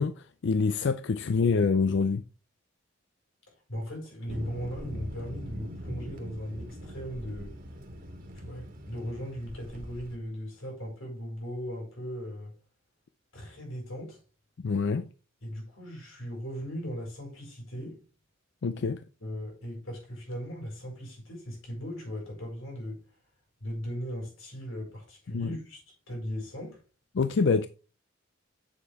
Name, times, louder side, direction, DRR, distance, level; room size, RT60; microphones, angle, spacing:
voice 1, 0.0-2.2 14.6-15.1 18.6-19.0 25.3-25.5 27.1-27.7, left 4 dB, 60° left, 0.4 m, -26 dB
voice 2, 3.7-7.5 8.3-12.5 13.3-14.2 15.4-18.0 19.2-23.0 23.6-26.8, equal, 90° left, 5.1 m, -38 dB
Thunder, 4.3-10.2, equal, 45° right, 1.6 m, -42 dB
8.4 x 7.1 x 3.5 m
head